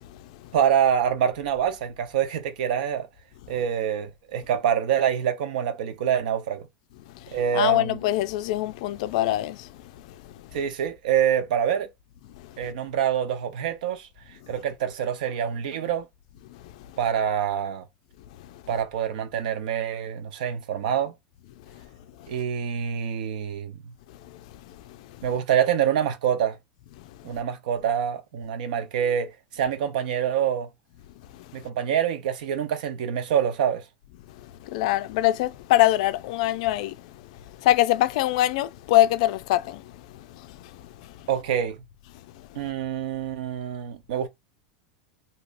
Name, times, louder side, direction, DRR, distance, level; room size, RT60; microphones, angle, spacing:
voice 1, 0.0-0.5 7.1-10.5 12.4-12.6 16.5-17.0 18.4-18.6 21.7-21.9 22.2-22.4 24.1-25.3 27.0-27.4 31.3-31.7 34.3-41.3 42.3-42.7, left 14 dB, 55° left, 0.3 m, -26 dB
voice 2, 0.5-3.1 3.5-6.7 7.3-8.0 10.5-11.9 12.6-14.1 14.5-16.0 17.0-17.8 18.7-21.1 22.3-23.8 25.2-26.6 27.2-30.7 31.5-33.8 41.3-41.8 42.5-44.3, right 9 dB, 75° right, 0.8 m, -26 dB
3.2 x 2.8 x 2.5 m
supercardioid pair, 180°, 4 cm